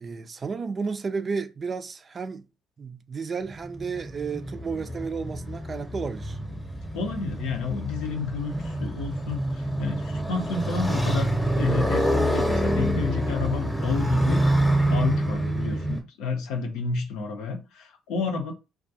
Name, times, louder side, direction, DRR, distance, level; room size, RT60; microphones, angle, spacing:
voice 1, 0.0-2.4 2.8-6.4, right 5 dB, 40° right, 0.3 m, -32 dB
Motorcycle, 3.5-16.0, right 1 dB, 5° left, 0.8 m, -26 dB
voice 2, 6.9-11.3 11.6-14.4 14.9-18.5, left 5 dB, 75° left, 0.5 m, -30 dB
2.3 x 2.1 x 2.7 m
hypercardioid pair, 60°, 0 cm